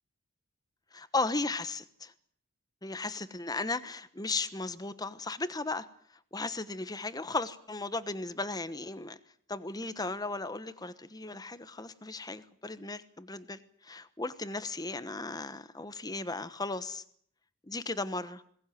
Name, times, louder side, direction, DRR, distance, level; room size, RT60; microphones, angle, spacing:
voice 1, 0.9-2.1 2.8-5.9 6.3-9.2 9.5-17.0 17.6-18.4, left 3 dB, 15° left, 13 dB, 1.2 m, -36 dB
22.0 x 18.5 x 9.3 m, 0.63 s
head